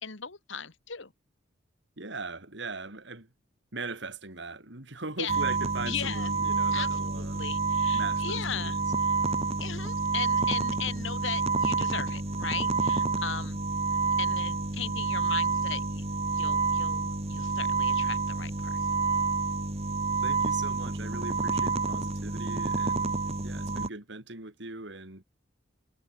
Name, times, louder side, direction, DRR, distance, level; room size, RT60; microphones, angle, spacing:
voice 1, 0.0-1.1 5.2-5.4 5.8-6.3 6.7-9.1 9.6-13.6 14.2-16.0 16.3-18.9, left 8 dB, 70° left, 1.8 m, -38 dB
voice 2, 2.0-3.3 3.7-7.5 7.9-8.8 20.2-25.2, right 3 dB, 60° right, 2.9 m, -40 dB
sound 1, 5.3-23.9, right 4 dB, 30° right, 1.6 m, -28 dB
head